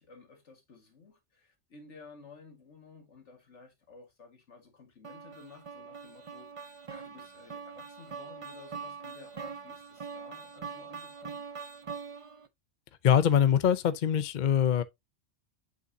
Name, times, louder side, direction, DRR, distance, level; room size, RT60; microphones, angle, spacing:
voice 1, 0.0-11.5, left 4 dB, 65° left, 2.2 m, -54 dB
sound 1, 5.0-12.5, right 5 dB, 40° right, 0.5 m, -43 dB
voice 2, 13.0-14.8, left 9 dB, 50° left, 0.6 m, -23 dB
7.7 x 5.5 x 2.7 m
omnidirectional pair, 1.3 m